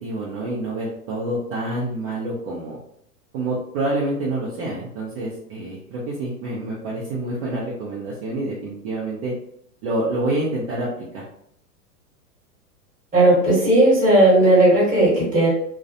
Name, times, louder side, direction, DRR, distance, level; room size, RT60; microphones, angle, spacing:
voice 1, 0.0-2.8 3.3-9.3 9.8-11.2, right 2 dB, 45° right, -6 dB, 0.8 m, -27 dB
voice 2, 13.1-15.5, right 1 dB, 15° right, -6 dB, 1.4 m, -15 dB
2.3 x 2.1 x 2.7 m, 0.68 s
hypercardioid pair, 105°, 46 cm